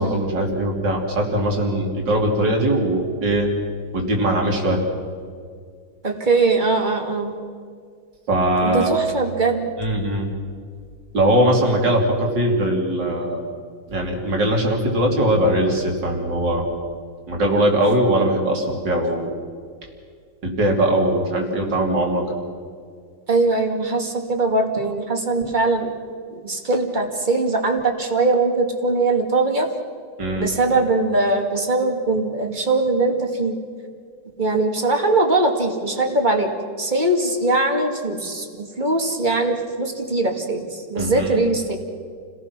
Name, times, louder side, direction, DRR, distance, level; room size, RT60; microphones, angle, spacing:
voice 1, 0.0-3.5 3.9-4.8 8.3-8.9 9.8-10.3 11.1-13.4 13.9-16.7 17.3-19.3 20.4-22.4 30.2-30.5 41.0-41.4, right 1 dB, 65° right, 1 dB, 3.7 m, -20 dB
voice 2, 6.0-7.3 8.6-9.7 23.3-25.9 26.3-29.7 30.4-33.6 34.4-36.5 36.8-41.8, right 2 dB, 25° right, 3 dB, 2.1 m, -21 dB
29.0 x 18.0 x 6.0 m, 2.1 s
omnidirectional pair, 2.0 m